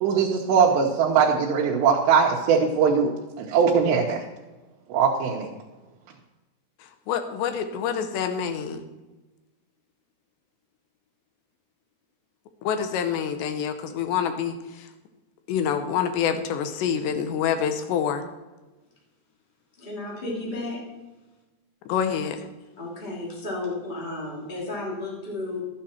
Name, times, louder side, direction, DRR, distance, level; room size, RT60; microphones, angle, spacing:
voice 1, 0.0-4.2 4.9-5.5, right 6 dB, 90° right, -2 dB, 3.1 m, -21 dB
voice 2, 6.8-8.8 12.6-14.9 15.5-18.2 21.9-22.4, left 8 dB, 90° left, 8 dB, 3.2 m, -27 dB
voice 3, 19.8-20.8 22.8-25.6, left 2 dB, 15° left, -4 dB, 2.6 m, -33 dB
13.0 x 8.8 x 4.4 m, 1.1 s
omnidirectional pair, 4.8 m